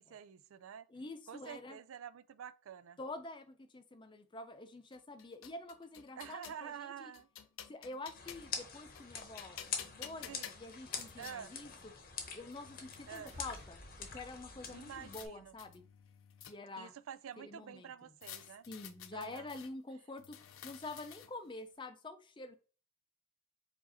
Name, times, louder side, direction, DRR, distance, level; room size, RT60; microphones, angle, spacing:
voice 1, 0.0-0.9 1.3-3.0 6.2-7.3 10.3-10.5 11.2-11.5 13.1-13.3 14.7-15.5 16.8-18.7 19.1-19.5, right 8 dB, 85° right, 0.4 m, -48 dB
voice 2, 0.9-1.8 3.0-7.1 7.7-9.6 10.0-11.9 12.3-15.8 16.5-17.0 17.4-18.1 18.7-22.6, left 2 dB, 25° left, 0.5 m, -47 dB
sound 1, 4.9-6.6 7.1-8.6 8.9-11.4 12.1-12.2 12.5-13.4 14.6-15.3 15.6-16.9 18.2-19.7 20.2-21.5, left 10 dB, 80° left, 0.5 m, -52 dB
sound 2, 8.1-15.3, left 6 dB, 45° left, 0.8 m, -45 dB
sound 3, 13.0-15.8, equal, 60° right, 1.9 m, -56 dB
4.7 x 2.5 x 4.2 m
head